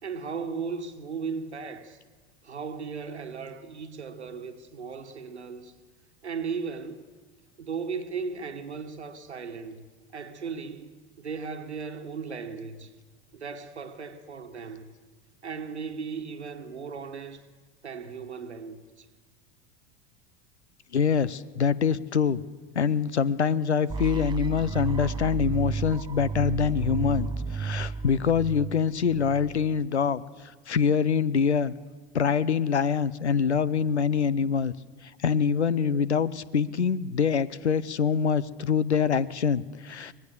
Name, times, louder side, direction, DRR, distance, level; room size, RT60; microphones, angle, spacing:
voice 1, 0.0-2.0 2.4-5.7 6.2-7.1 7.6-9.9 10.1-12.9 13.3-14.9 15.4-17.4 17.8-19.1, right 5 dB, 80° right, 1.5 m, -36 dB
voice 2, 20.9-22.4 22.7-31.7 32.1-34.7 35.0-40.1, left 6 dB, 85° left, 0.8 m, -25 dB
sound 1, 23.9-29.8, right 4 dB, 15° right, 0.7 m, -33 dB
24.0 x 19.5 x 6.9 m
figure-of-eight pair, 80°, 33 cm